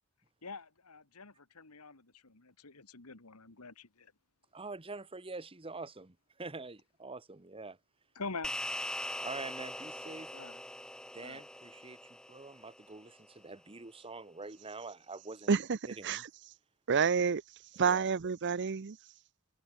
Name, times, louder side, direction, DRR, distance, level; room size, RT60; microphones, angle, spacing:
voice 1, 0.4-4.1 8.2-8.5 10.3-10.6 11.2-11.4, left 4 dB, 85° left, 2.2 m, -45 dB
voice 2, 4.5-7.8 9.2-10.3 11.1-12.0 12.3-15.5 15.8-16.2 17.8-18.2, right 3 dB, 25° right, 1.3 m, -45 dB
sound 1, 8.4-13.1, left 1 dB, 5° left, 0.9 m, -42 dB
voice 3, 15.5-15.8 16.0-16.2 16.9-17.4 17.8-19.0, right 6 dB, 55° right, 0.6 m, -28 dB
head